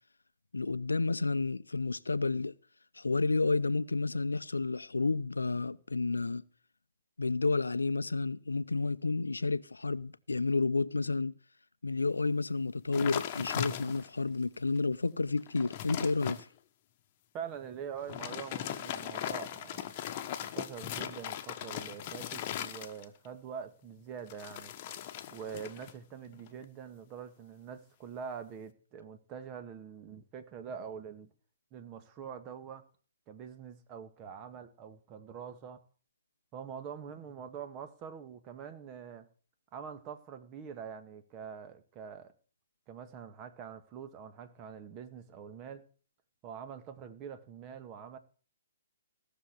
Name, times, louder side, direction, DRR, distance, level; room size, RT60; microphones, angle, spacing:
voice 1, 0.5-2.5 3.0-6.4 7.2-11.3 11.8-16.5, left 3 dB, 90° left, 0.7 m, -31 dB
sound 1, 12.9-14.2 14.8-14.9 15.3-16.4 18.0-23.3 24.3-26.0 26.2-26.6, left 11 dB, 40° left, 1.2 m, -39 dB
voice 2, 17.3-19.9 20.4-24.7 25.3-31.3 31.7-32.8 33.3-35.8 36.5-39.3 39.7-42.3 42.9-45.8 46.4-48.2, right 7 dB, 30° right, 1.8 m, -44 dB
16.5 x 6.8 x 7.8 m
hypercardioid pair, 130°, 0 cm